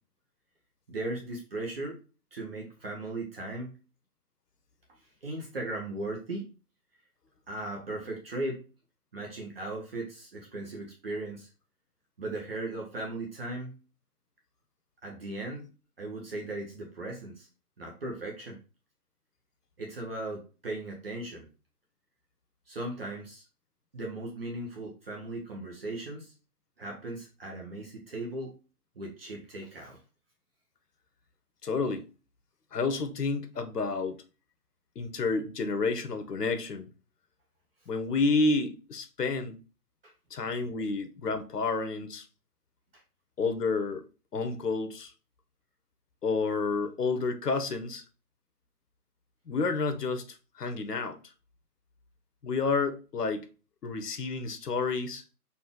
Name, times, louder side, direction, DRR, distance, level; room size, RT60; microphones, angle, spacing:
voice 1, 0.9-2.0 2.3-3.8 5.2-6.5 7.5-8.6 9.1-11.5 12.2-13.7 15.0-15.6 16.0-17.5 17.8-18.6 19.8-21.5 22.7-23.4 23.9-26.3 26.8-28.5 29.0-30.0 40.0-40.1, right 2 dB, 40° right, 0.9 m, -37 dB
voice 2, 31.6-32.1 32.7-34.2 35.0-36.9 37.9-39.6 40.3-42.2 43.4-44.0 44.3-45.1 46.2-48.0 49.5-50.2 50.6-51.2 52.4-53.5 53.8-55.2, left 4 dB, 90° left, 0.9 m, -30 dB
4.2 x 2.7 x 3.6 m
hypercardioid pair, 160°, 46 cm